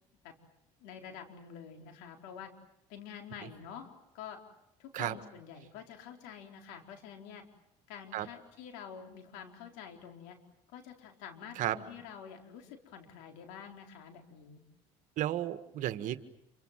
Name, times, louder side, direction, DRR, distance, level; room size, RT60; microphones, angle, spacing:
voice 1, 0.8-2.5 2.9-3.9 4.1-4.4 4.8-7.4 7.9-10.4 10.7-14.6, left 8 dB, 85° left, 4 dB, 4.3 m, -48 dB
voice 2, 15.2-16.2, right 13 dB, 60° right, 11 dB, 1.7 m, -33 dB
28.0 x 25.5 x 7.6 m, 0.84 s
supercardioid pair, 90°, 15 cm